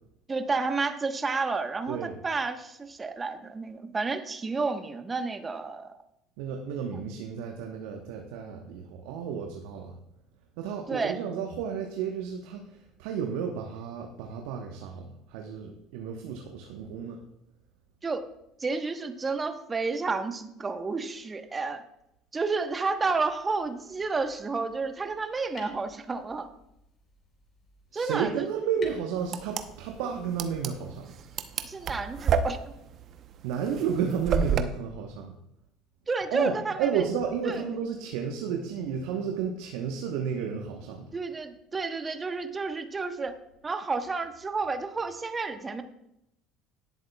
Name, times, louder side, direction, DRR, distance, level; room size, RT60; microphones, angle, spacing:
voice 1, 0.3-5.9 7.0-7.1 10.9-11.2 18.0-18.2 18.6-21.8 22.3-26.5 27.9-28.5 31.6-32.8 36.1-37.0 37.4-37.6 41.1-43.4 43.6-45.8, right 4 dB, 25° right, 7 dB, 1.2 m, -31 dB
voice 2, 6.4-10.0 10.6-17.2 27.9-31.2 33.4-35.3 36.3-41.1, right 7 dB, 65° right, 2 dB, 1.1 m, -32 dB
sound 1, 22.6-30.6, left 3 dB, 35° left, 3.8 m, -55 dB
sound 2, 29.2-34.6, right 7 dB, 45° right, 0.9 m, -30 dB
18.5 x 7.8 x 2.3 m, 0.82 s
figure-of-eight pair, 65°, 0 cm